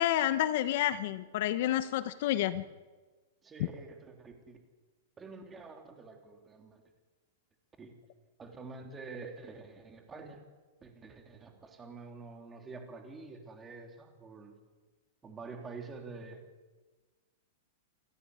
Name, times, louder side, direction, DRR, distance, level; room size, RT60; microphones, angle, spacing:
voice 1, 0.0-2.6, left 12 dB, 50° left, 13 dB, 1.1 m, -29 dB
voice 2, 3.4-4.6 5.2-6.8 7.8-7.9 8.4-10.4 10.8-14.6 15.2-16.4, right 4 dB, 15° right, 4 dB, 3.4 m, -47 dB
28.0 x 14.0 x 9.7 m, 1.3 s
supercardioid pair, 160°, 0 cm